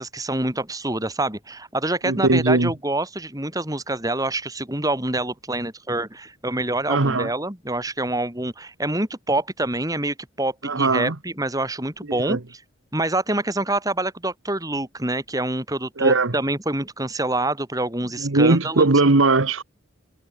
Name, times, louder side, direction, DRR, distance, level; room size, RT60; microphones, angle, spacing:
voice 1, 0.0-12.4 12.9-18.9, right 2 dB, 20° right, 5.0 m, -26 dB
voice 2, 2.0-2.7 6.9-7.3 10.6-11.2 12.1-12.4 16.0-16.3 18.2-19.6, right 3 dB, 80° right, 1.3 m, -19 dB
head